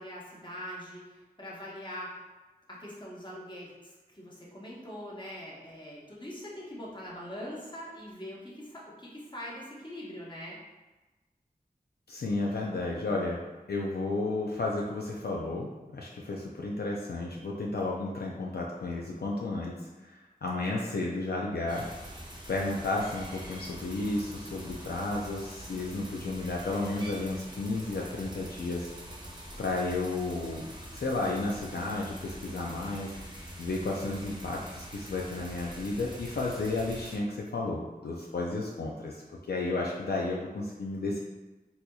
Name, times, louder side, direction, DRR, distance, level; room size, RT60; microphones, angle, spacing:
voice 1, 0.0-2.2 2.7-10.6, equal, 30° left, -5 dB, 1.0 m, -42 dB
voice 2, 12.1-13.4 13.7-21.9 22.5-28.9 29.6-41.2, left 2 dB, 75° left, -2 dB, 0.4 m, -33 dB
sound 1, 21.7-37.2, equal, 25° right, 0.7 m, -45 dB
4.2 x 2.7 x 2.3 m, 1.1 s
wide cardioid pair, 60°, 17 cm